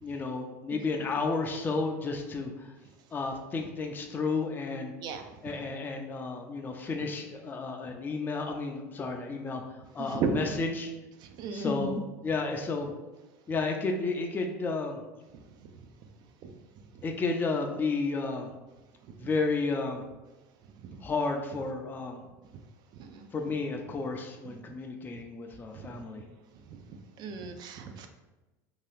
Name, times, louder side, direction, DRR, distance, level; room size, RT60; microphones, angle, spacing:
voice 1, 0.0-2.7 3.1-4.9 5.4-9.6 9.9-10.9 11.5-12.9 13.5-15.0 17.0-18.5 19.2-20.0 21.0-22.2 23.3-26.2, left 3 dB, 20° left, 3 dB, 0.4 m, -32 dB
voice 2, 10.0-10.4 11.2-11.9 15.6-15.7 16.4-16.5 16.9-17.0 19.0-19.1 20.8-21.0 22.9-23.3 25.1-25.2 25.7-26.0 26.7-28.1, right 5 dB, 50° right, 6 dB, 0.4 m, -36 dB
2.7 x 2.3 x 3.3 m, 1.1 s
supercardioid pair, 105°, 9 cm